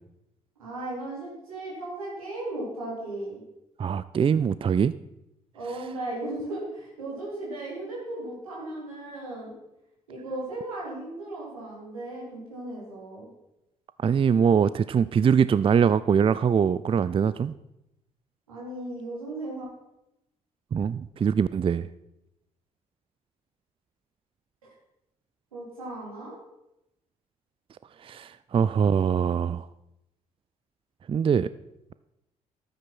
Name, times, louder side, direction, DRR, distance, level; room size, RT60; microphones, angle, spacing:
voice 1, 0.6-3.4 5.5-9.5 10.1-13.3 18.5-19.7 25.5-26.3, right 2 dB, 85° right, -4 dB, 4.0 m, -36 dB
voice 2, 3.8-4.9 14.0-17.5 20.7-21.9 28.0-29.7 31.1-31.5, right 7 dB, 30° right, 16 dB, 0.5 m, -23 dB
13.0 x 9.3 x 6.1 m, 0.87 s
figure-of-eight pair, 45°, 18 cm